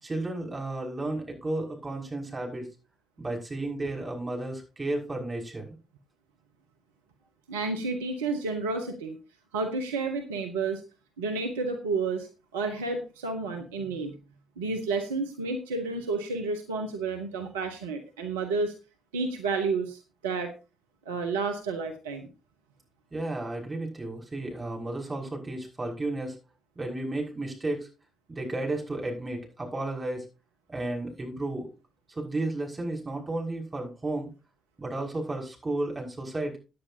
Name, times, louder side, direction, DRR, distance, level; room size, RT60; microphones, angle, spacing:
voice 1, 0.0-2.7 3.2-5.7 23.1-26.3 26.8-27.8 28.3-30.2 30.7-31.7 32.1-34.3 34.8-36.6, right 2 dB, 30° right, 0 dB, 6.1 m, -33 dB
voice 2, 7.5-9.2 9.5-10.8 11.2-14.1 14.6-18.7 19.1-20.5 21.0-22.3, right 3 dB, 85° right, 5 dB, 1.1 m, -31 dB
16.5 x 9.9 x 2.8 m, 0.30 s
hypercardioid pair, 40°, 0 cm